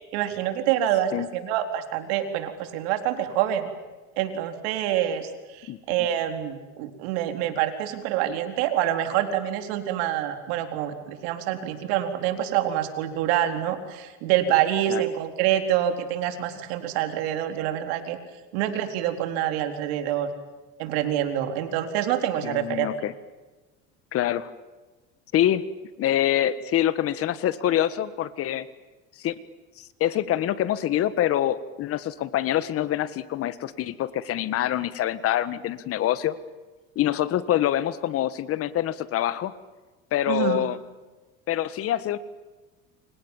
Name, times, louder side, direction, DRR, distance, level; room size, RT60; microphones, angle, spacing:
voice 1, 0.1-3.7 4.2-18.2 18.5-20.3 20.8-22.9 40.3-40.6, right 11 dB, 85° right, 7 dB, 4.2 m, -26 dB
voice 2, 5.7-6.1 14.9-15.0 22.4-23.1 24.1-24.5 25.3-25.6 26.0-28.7 29.2-29.3 29.8-36.3 36.9-39.5 40.1-40.8 41.5-42.2, left 12 dB, 45° left, 15 dB, 1.7 m, -25 dB
29.5 x 26.0 x 7.4 m, 1.2 s
cardioid pair, 135°, 31 cm